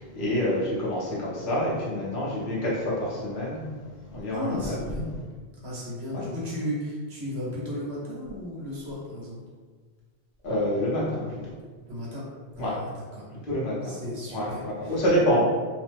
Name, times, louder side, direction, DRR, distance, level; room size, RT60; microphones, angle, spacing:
voice 1, 0.0-3.6 4.1-5.0 6.1-6.2 10.4-11.5 12.6-12.8 13.5-14.0 14.3-15.4, equal, 55° left, -7 dB, 1.0 m, -27 dB
voice 2, 4.3-5.1 5.6-9.4 11.9-12.2 12.6-13.2 13.8-15.0, left 1 dB, 75° right, -6 dB, 1.2 m, -35 dB
3.0 x 2.0 x 3.3 m, 1.5 s
omnidirectional pair, 1.1 m